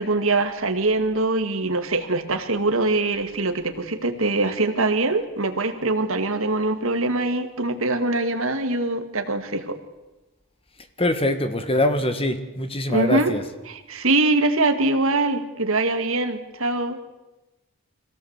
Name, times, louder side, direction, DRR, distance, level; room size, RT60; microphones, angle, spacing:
voice 1, 0.0-9.8 12.9-13.3 13.7-17.0, right 2 dB, 65° right, 7 dB, 2.1 m, -23 dB
voice 2, 11.0-13.4, left 1 dB, 25° left, 9 dB, 1.7 m, -23 dB
25.0 x 17.5 x 8.2 m, 1.1 s
head